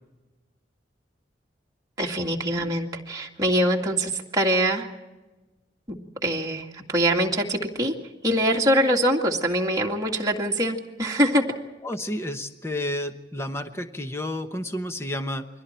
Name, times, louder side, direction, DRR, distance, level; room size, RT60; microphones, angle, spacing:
voice 1, 2.0-4.9 5.9-7.9 8.2-11.4, right 1 dB, 20° right, -2 dB, 2.2 m, -24 dB
voice 2, 11.8-15.5, left 1 dB, 15° left, 7 dB, 1.0 m, -31 dB
29.5 x 22.5 x 4.5 m, 1.1 s
head